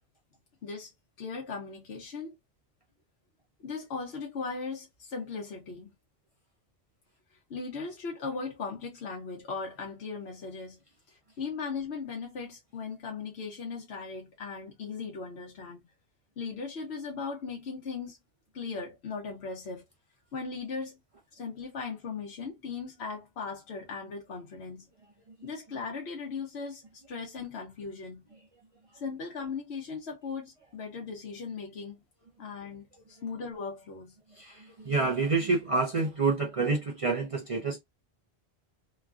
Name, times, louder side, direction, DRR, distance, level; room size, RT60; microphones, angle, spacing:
voice 1, 1.2-2.3 3.6-6.0 7.3-10.8 11.1-15.8 16.4-18.2 18.5-19.8 20.3-21.0 21.3-24.9 25.4-28.3 28.9-32.0 32.4-34.2, left 5 dB, 80° left, 1.1 m, -38 dB
voice 2, 34.3-37.8, right 3 dB, 40° right, 0.6 m, -28 dB
3.1 x 2.3 x 2.3 m
omnidirectional pair, 1.1 m